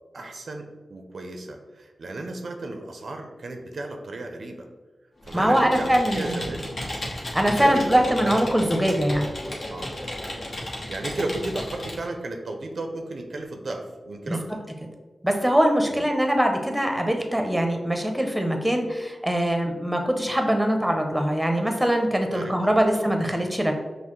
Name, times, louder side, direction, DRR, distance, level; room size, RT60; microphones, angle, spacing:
voice 1, 0.1-4.7 5.2-6.7 7.4-8.3 9.7-9.9 10.9-14.6 15.9-16.1 22.3-23.1, right 2 dB, 70° right, 3 dB, 0.4 m, -34 dB
Computer keyboard, 5.2-12.1, left 1 dB, 65° left, 0.9 m, -34 dB
voice 2, 5.3-6.4 7.3-9.3 14.3-14.4 15.2-23.7, equal, 10° right, 4 dB, 0.7 m, -22 dB
5.5 x 2.0 x 3.0 m, 1.3 s
cardioid pair, 45°, 0 cm